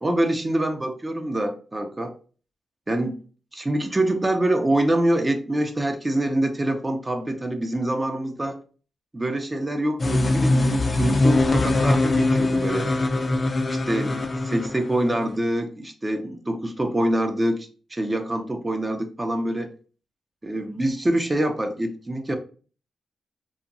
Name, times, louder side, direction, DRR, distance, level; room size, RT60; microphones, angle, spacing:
voice 1, 0.0-2.1 2.9-3.2 3.5-8.6 9.1-12.9 13.7-19.7 20.4-22.4, right 1 dB, 25° right, 5 dB, 0.5 m, -25 dB
sound 1, 10.0-15.4, left 2 dB, 40° left, 0.4 m, -22 dB
2.8 x 2.1 x 2.5 m, 0.38 s
supercardioid pair, 55°, 0 cm